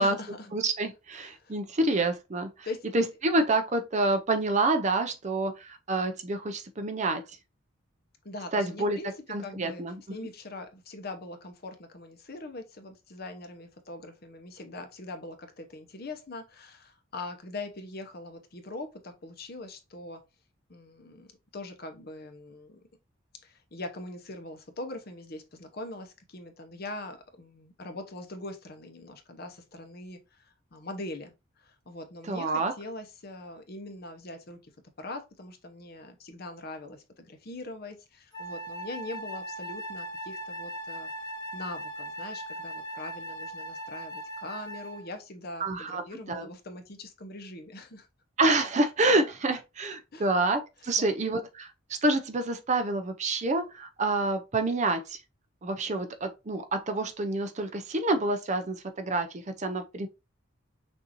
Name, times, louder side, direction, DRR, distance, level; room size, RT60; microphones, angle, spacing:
voice 1, 0.0-0.5 1.2-1.5 2.6-2.9 8.2-9.1 9.4-9.8 10.1-20.2 20.7-22.9 23.4-34.7 35.0-48.1 50.1-50.3 50.8-51.1, left 2 dB, 50° left, 0.9 m, -42 dB
voice 2, 0.5-2.5 2.9-7.2 8.5-9.0 9.3-9.9 32.3-32.7 45.6-46.0 46.3-46.5 48.4-55.2 55.6-60.1, right 2 dB, 35° right, 0.6 m, -27 dB
Wind instrument woodwind instrument, 38.3-45.1, right 1 dB, 20° left, 1.1 m, -39 dB
6.2 x 2.7 x 2.9 m
head